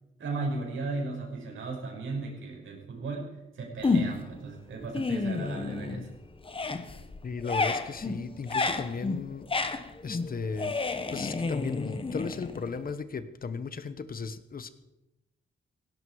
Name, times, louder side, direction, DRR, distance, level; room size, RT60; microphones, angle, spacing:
voice 1, 0.2-3.3 3.5-6.2, right 3 dB, 75° right, 0 dB, 5.9 m, -36 dB
sound 1, 3.8-4.4 4.8-6.1 6.4-12.9, left 3 dB, 25° left, 1.2 m, -31 dB
voice 2, 7.2-9.5 10.0-10.8 11.1-14.7, left 5 dB, 45° left, 12 dB, 1.2 m, -36 dB
17.5 x 17.0 x 4.9 m, 0.95 s
wide cardioid pair, 120°, 21 cm